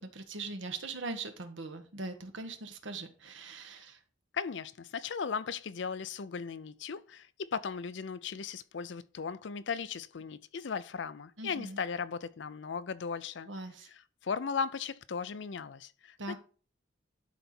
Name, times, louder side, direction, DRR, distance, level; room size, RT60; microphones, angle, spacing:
voice 1, 0.0-4.0 11.4-11.8 13.5-13.9 16.2-16.4, right 3 dB, 80° right, 1.3 m, -41 dB
voice 2, 4.3-13.5 13.9-16.4, left 6 dB, 65° left, 0.5 m, -37 dB
11.5 x 4.1 x 4.4 m
head